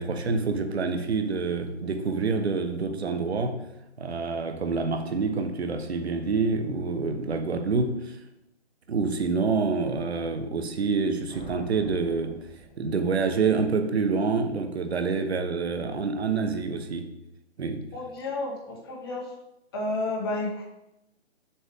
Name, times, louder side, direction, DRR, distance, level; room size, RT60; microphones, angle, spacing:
voice 1, 0.0-3.6 4.0-8.2 8.9-12.5 12.8-17.1 17.6-17.9, right 4 dB, 65° right, 1.1 m, -27 dB
sound 1, 11.3-13.4, right 1 dB, 10° right, 2.7 m, -46 dB
voice 2, 17.9-19.3 19.7-20.6, left 2 dB, 20° left, 1.2 m, -31 dB
7.2 x 6.2 x 3.6 m
hypercardioid pair, 170°, 35 cm